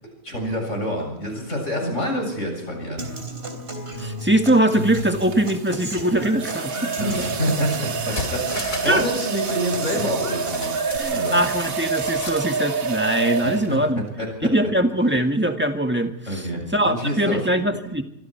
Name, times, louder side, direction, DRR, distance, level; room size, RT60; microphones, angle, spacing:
voice 1, 0.0-3.1 7.0-10.8 11.1-11.4 13.4-14.5 16.3-17.5, equal, 60° left, 2 dB, 7.8 m, -27 dB
sound 1, 2.8-3.1 4.8-14.0, right 5 dB, 85° right, 1.9 m, -28 dB
Human voice / Acoustic guitar, 3.0-11.0, equal, 45° right, 3.8 m, -34 dB
voice 2, 4.0-6.9 8.8-9.0 11.0-14.0 14.5-16.1 16.7-18.0, right 1 dB, 10° right, 5 dB, 1.7 m, -21 dB
sound 2, 7.9-9.1 9.3-9.4 10.5-12.5 12.8-12.9, left 2 dB, 80° left, 3.6 m, -34 dB
26.0 x 23.5 x 4.6 m, 0.82 s
omnidirectional pair, 1.4 m